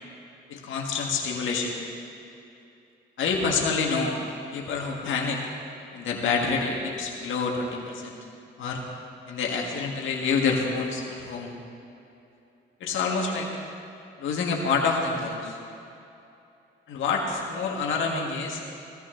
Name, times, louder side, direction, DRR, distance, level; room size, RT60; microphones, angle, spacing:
voice 1, 0.5-1.7 3.2-4.2 4.5-5.4 5.9-8.2 8.6-8.8 9.3-11.6 12.8-13.5 14.2-15.6 16.9-18.6, left 4 dB, 75° left, 0 dB, 1.8 m, -27 dB
16.0 x 14.0 x 3.9 m, 2.7 s
cardioid pair, 90°, 20 cm